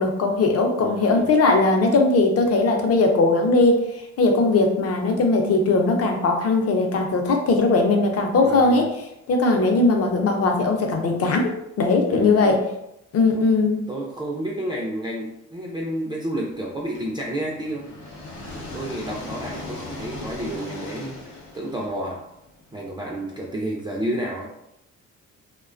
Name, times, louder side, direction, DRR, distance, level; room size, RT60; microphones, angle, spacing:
voice 1, 0.0-3.8 4.2-8.9 9.3-11.5 11.8-12.6 13.1-13.8, left 3 dB, 50° left, 3 dB, 0.6 m, -19 dB
voice 2, 0.8-1.3 8.4-8.9 12.1-12.5 13.3-13.4 13.9-18.0 18.5-22.2 22.7-24.5, right 1 dB, 15° right, -3 dB, 0.3 m, -30 dB
sound 1, 16.9-22.8, left 2 dB, 85° left, 0.7 m, -38 dB
2.3 x 2.2 x 2.4 m, 0.83 s
cardioid pair, 90°, 30 cm